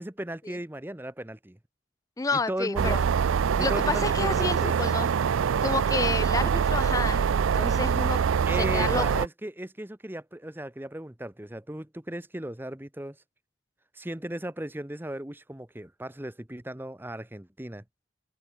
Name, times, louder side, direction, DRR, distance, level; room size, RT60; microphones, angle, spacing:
voice 1, 0.0-1.6 2.3-3.0 3.6-4.7 8.4-13.2 13.9-17.8, right 1 dB, 10° right, 0.9 m, -36 dB
voice 2, 2.2-3.0 3.6-5.1 5.6-8.2 8.6-9.2, left 3 dB, 15° left, 0.4 m, -30 dB
sound 1, 2.8-9.3, right 7 dB, 85° right, 0.4 m, -24 dB
head